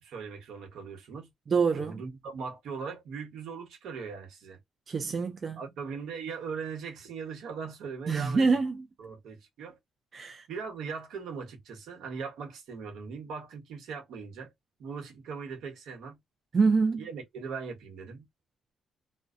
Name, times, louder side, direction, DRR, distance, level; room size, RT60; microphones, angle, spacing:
voice 1, 0.0-1.3 1.7-4.6 5.6-8.6 9.0-9.7 10.5-14.5 14.8-16.2 16.9-18.2, right 5 dB, 80° right, 1.1 m, -40 dB
voice 2, 1.5-1.9 4.9-5.6 8.1-8.9 10.1-10.5 16.5-17.1, right 4 dB, 40° right, 0.4 m, -26 dB
2.5 x 2.2 x 2.4 m
cardioid pair, 90°, 0 cm